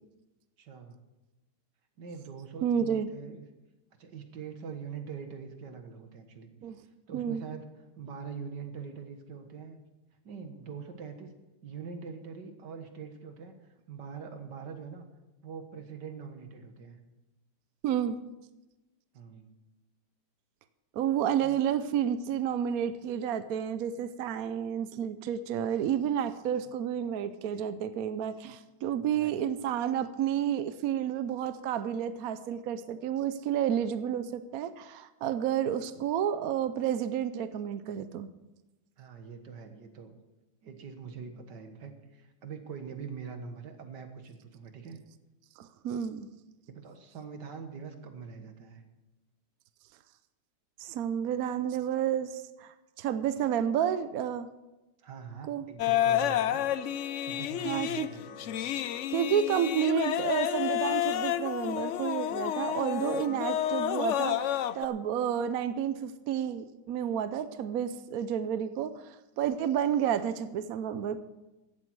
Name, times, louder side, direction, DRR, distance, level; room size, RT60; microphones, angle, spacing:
voice 1, 0.6-1.0 2.0-3.4 4.0-6.5 7.1-7.6 8.0-9.8 10.2-11.3 11.6-13.6 13.9-15.1 15.4-17.0 19.1-19.5 21.4-21.6 26.6-26.7 29.0-29.4 39.0-40.1 40.6-45.0 46.7-48.8 55.0-56.6 57.2-58.7, right 6 dB, 80° right, 7 dB, 2.0 m, -43 dB
voice 2, 2.6-3.1 6.6-6.8 7.1-7.4 17.8-18.2 20.9-38.3 45.6-46.3 50.8-54.5 55.5-55.6 57.6-58.1 59.1-71.2, right 9 dB, 65° right, 12 dB, 1.0 m, -30 dB
sound 1, 55.8-64.9, left 11 dB, 70° left, 0.7 m, -30 dB
16.0 x 11.5 x 4.7 m, 1.0 s
omnidirectional pair, 1.8 m